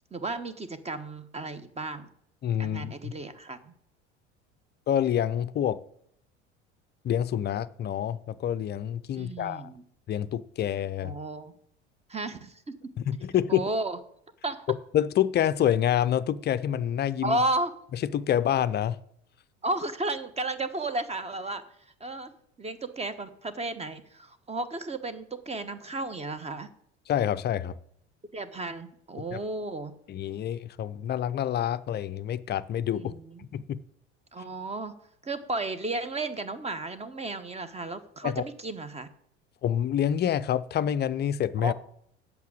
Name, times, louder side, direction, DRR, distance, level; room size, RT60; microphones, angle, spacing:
voice 1, 0.1-2.1 2.6-3.7 9.1-9.8 11.0-11.5 12.1-12.7 13.5-14.0 14.4-14.7 17.2-17.7 19.6-21.6 22.0-22.3 22.6-26.7 28.3-29.9 33.0-33.5 34.3-34.9 35.2-39.1 41.6-41.7, right 2 dB, 20° right, 13 dB, 1.1 m, -33 dB
voice 2, 2.4-3.1 4.9-5.8 7.0-9.7 10.1-11.1 13.1-13.6 14.9-17.4 18.1-19.0 27.1-27.8 29.3-29.4 30.1-33.1 33.5-33.8 38.2-38.4 39.6-41.7, left 10 dB, 30° left, 14 dB, 0.5 m, -27 dB
8.3 x 6.9 x 8.5 m, 0.69 s
figure-of-eight pair, 70°, 35 cm